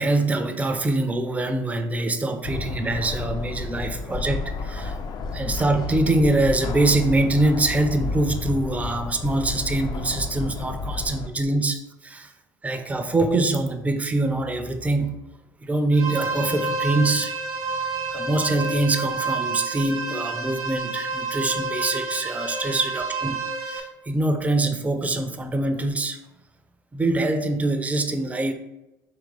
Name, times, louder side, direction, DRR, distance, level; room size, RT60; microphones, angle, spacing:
voice 1, 0.0-5.0 5.3-12.3 12.6-15.2 15.6-17.3 18.1-26.2 26.9-28.5, right 2 dB, 15° right, 6 dB, 0.5 m, -24 dB
sound 1, 2.4-11.3, left 4 dB, 45° left, 0.5 m, -31 dB
sound 2, 15.9-23.8, right 3 dB, 80° right, 0.6 m, -29 dB
3.5 x 3.2 x 3.3 m, 1.0 s
hypercardioid pair, 70°, 10 cm